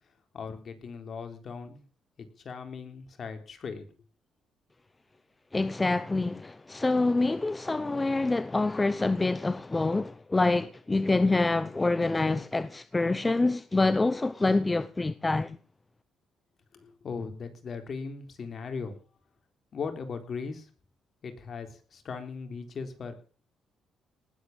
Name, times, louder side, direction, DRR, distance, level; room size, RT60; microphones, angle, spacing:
voice 1, 0.3-1.8 2.4-3.9 16.7-19.0 19.7-20.7 21.2-23.1, left 5 dB, 50° left, 3.8 m, -38 dB
voice 2, 5.5-15.6, left 2 dB, 20° left, 0.8 m, -26 dB
19.5 x 8.6 x 7.2 m
cardioid pair, 90°, 0 cm